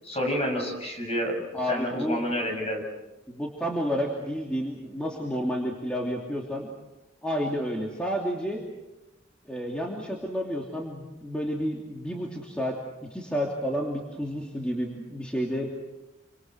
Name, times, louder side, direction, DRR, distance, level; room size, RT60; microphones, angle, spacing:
voice 1, 0.0-2.8, equal, 30° left, 2 dB, 6.6 m, -29 dB
voice 2, 1.5-2.2 3.3-6.7 7.2-8.6 9.5-15.7, equal, 5° left, -1 dB, 2.9 m, -30 dB
29.0 x 26.0 x 6.3 m, 1.0 s
head